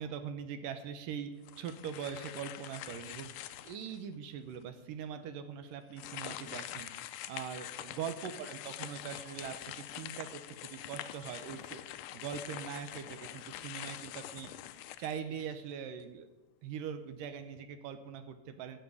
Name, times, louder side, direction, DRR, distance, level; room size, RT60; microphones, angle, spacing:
voice 1, 0.0-3.3 3.6-14.5 15.0-16.3 16.6-18.8, right 7 dB, 75° right, 9 dB, 2.4 m, -42 dB
sound 1, 1.4-4.0 4.5-4.6 5.9-15.7, left 13 dB, 80° left, 2.0 m, -45 dB
14.0 x 6.4 x 9.6 m, 1.1 s
omnidirectional pair, 4.1 m